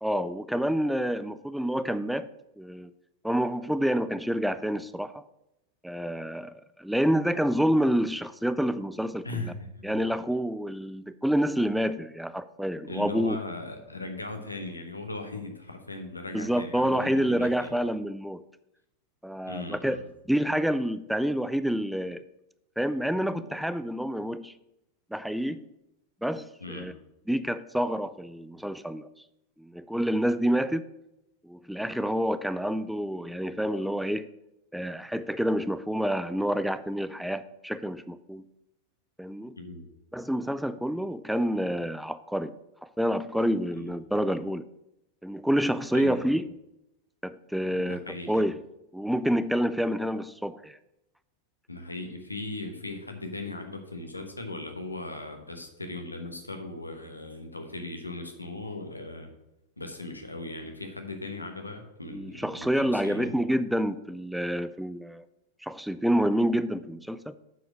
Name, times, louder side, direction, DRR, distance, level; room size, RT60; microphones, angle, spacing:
voice 1, 0.0-2.3 2.6-2.9 3.2-5.2 5.8-9.5 9.8-13.4 16.3-18.4 19.2-20.0 20.3-22.2 22.8-24.5 25.1-25.6 26.2-26.9 27.3-29.1 29.6-30.8 31.4-34.3 34.7-38.4 39.2-39.6 40.1-44.6 45.2-46.5 47.2-48.6 48.9-50.8 62.1-65.3 65.6-67.3, equal, ahead, 14 dB, 0.3 m, -28 dB
voice 2, 9.2-10.0 12.9-17.8 19.4-20.0 26.6-26.9 39.6-39.9 43.7-43.9 45.9-46.2 47.7-48.4 51.7-59.3 59.8-63.3, left 2 dB, 85° left, 5 dB, 1.1 m, -38 dB
8.1 x 4.9 x 6.1 m, 0.89 s
figure-of-eight pair, 90°, 0 cm